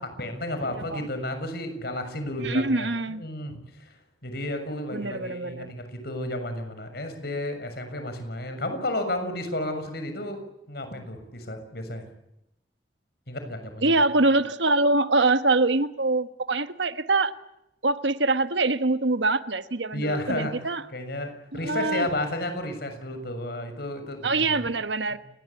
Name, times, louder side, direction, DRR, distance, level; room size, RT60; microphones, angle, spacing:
voice 1, 0.0-3.5 3.8-3.9 4.2-10.4 10.7-12.0 13.3-14.0 19.9-24.6 25.1-25.2, left 1 dB, 60° left, 6.8 m, -32 dB
voice 2, 2.4-3.2 4.9-5.7 13.8-17.3 17.8-20.8 21.6-22.1 24.2-25.2, right 2 dB, 80° right, 1.5 m, -24 dB
29.5 x 21.0 x 8.5 m
head